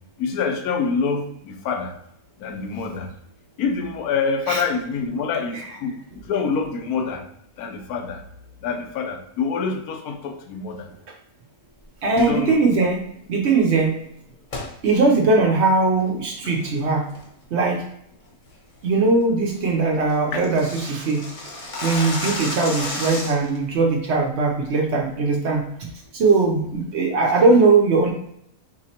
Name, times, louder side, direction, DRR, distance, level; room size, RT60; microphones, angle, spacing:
voice 1, 0.2-1.9 2.4-3.1 3.6-6.0 6.3-7.2 7.6-8.2 8.6-10.8 12.2-12.6 20.3-20.4, left 5 dB, 85° left, 5 dB, 1.1 m, -26 dB
voice 2, 12.0-13.0 13.3-13.9 14.8-17.1 17.5-17.8 18.8-21.3 21.8-25.7 26.1-28.1, right 3 dB, 60° right, 1 dB, 0.8 m, -20 dB
sound 1, 12.1-12.4 14.5-14.7 15.2-15.3 15.8-16.1 16.5-16.8 17.1-17.4 17.8-17.9 18.3-18.5 18.9-19.0 19.3-19.4 19.6-19.7 19.9-23.6, left 2 dB, 40° left, 0.9 m, -31 dB
4.9 x 3.0 x 2.8 m, 0.73 s
omnidirectional pair, 1.6 m